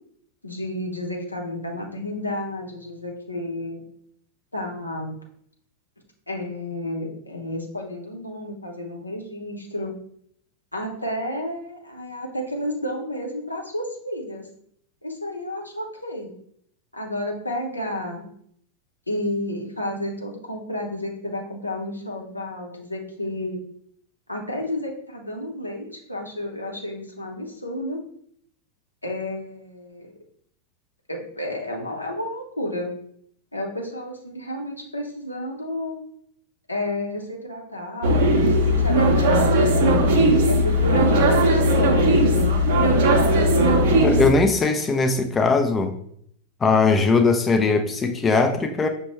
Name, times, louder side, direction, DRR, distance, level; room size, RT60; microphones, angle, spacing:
voice 1, 0.4-3.8 4.5-5.1 6.3-9.9 10.7-14.4 15.0-16.3 16.9-18.2 19.1-23.6 24.3-28.0 29.0-30.2 31.1-32.9 33.5-36.0 36.7-38.3 38.7-39.5 40.4-42.5, left 1 dB, 85° left, 0 dB, 0.7 m, -31 dB
sound 1, 38.0-44.3, equal, 50° right, 0.7 m, -18 dB
voice 2, 44.0-45.9 46.6-48.9, left 4 dB, 20° left, 6 dB, 0.4 m, -20 dB
5.9 x 2.2 x 3.1 m, 0.66 s
figure-of-eight pair, 90°, 0 cm